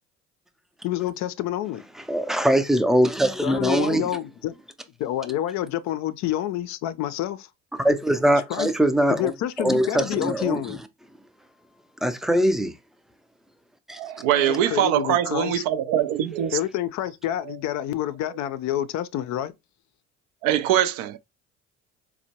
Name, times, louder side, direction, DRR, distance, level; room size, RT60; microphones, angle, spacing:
voice 1, 0.8-1.8 3.4-4.5 5.0-7.5 8.5-8.7 9.1-10.8 14.3-15.6 16.5-19.5, left 12 dB, 50° left, 0.4 m, -28 dB
voice 2, 2.1-4.0 7.8-9.3 9.6-10.8 12.0-12.7 13.9-14.0, right 1 dB, ahead, 0.5 m, -22 dB
voice 3, 14.0-16.6 20.4-21.2, right 11 dB, 65° right, 0.5 m, -23 dB
4.2 x 2.1 x 2.8 m
hypercardioid pair, 60°, 36 cm